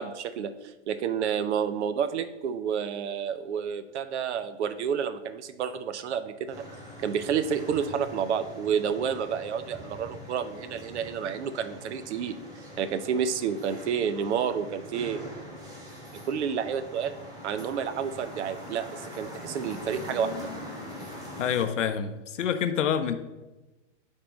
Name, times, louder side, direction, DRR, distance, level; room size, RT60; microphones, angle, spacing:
voice 1, 0.0-6.6 7.0-12.4 12.8-15.2 16.3-17.1 17.4-20.3, right 7 dB, 70° right, 0.7 m, -30 dB
sound 1, 6.5-21.7, left 1 dB, 10° right, 1.8 m, -43 dB
voice 2, 21.4-23.1, left 8 dB, 85° left, 0.6 m, -27 dB
9.4 x 3.7 x 3.9 m
hypercardioid pair, 125°, 36 cm